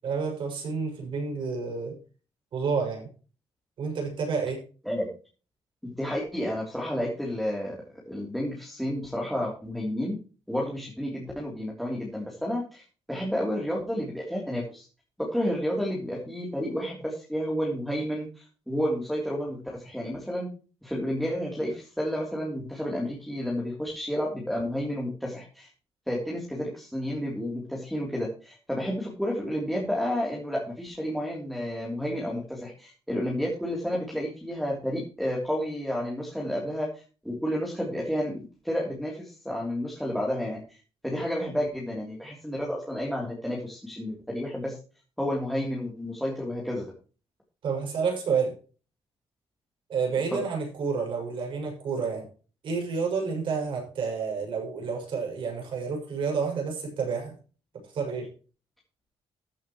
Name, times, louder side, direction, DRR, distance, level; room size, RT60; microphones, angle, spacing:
voice 1, 0.0-2.0 2.5-3.1 3.8-4.6 47.6-48.6 49.9-52.3 52.6-57.3 57.9-58.3, right 5 dB, 55° right, 1 dB, 6.8 m, -29 dB
voice 2, 5.8-7.8 8.1-10.1 10.5-14.9 15.3-20.5 20.8-25.7 26.1-40.8 41.0-44.8 45.2-46.9 50.3-50.4, equal, ahead, -2 dB, 3.3 m, -31 dB
15.0 x 8.8 x 3.1 m, 0.36 s
cardioid pair, 155°, 10 cm